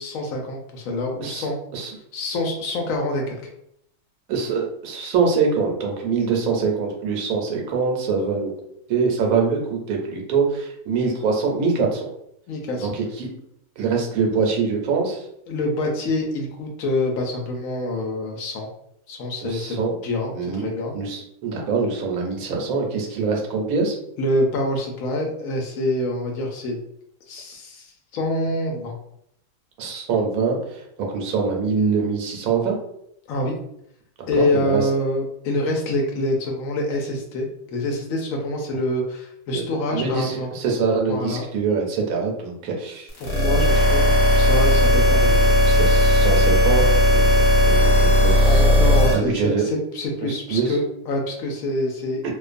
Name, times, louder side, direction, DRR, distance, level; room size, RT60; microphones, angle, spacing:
voice 1, 0.0-1.6 2.1-3.4 12.5-12.9 15.5-18.7 19.1-19.8 20.0-20.9 24.2-26.8 27.3-28.9 33.3-33.5 34.3-40.5 41.1-41.4 43.2-45.5 48.5-52.3, left 1 dB, 70° left, 1 dB, 0.9 m, -26 dB
voice 2, 1.2-1.9 4.3-8.5 8.9-12.1 12.8-13.3 13.8-15.3 19.4-20.0 20.3-20.6 20.9-24.0 29.8-30.8 31.1-32.8 34.4-34.9 39.5-43.1 43.5-43.8 45.6-48.3 49.1-49.6 50.2-50.8 52.2-52.3, right 5 dB, 75° right, 0 dB, 1.0 m, -24 dB
sound 1, 43.1-49.1, left 1 dB, 50° left, 0.8 m, -16 dB
2.5 x 2.2 x 2.4 m, 0.74 s
omnidirectional pair, 1.6 m